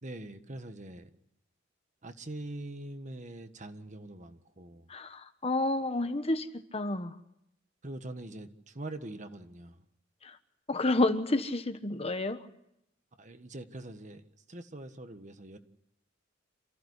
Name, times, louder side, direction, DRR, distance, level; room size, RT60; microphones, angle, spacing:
voice 1, 0.0-1.1 2.0-4.9 7.8-9.8 13.2-15.6, right 1 dB, 40° right, 8 dB, 1.5 m, -43 dB
voice 2, 4.9-7.2 10.2-10.4 10.7-12.4, left 2 dB, 30° left, 9 dB, 1.2 m, -30 dB
28.0 x 15.5 x 8.2 m, 0.81 s
head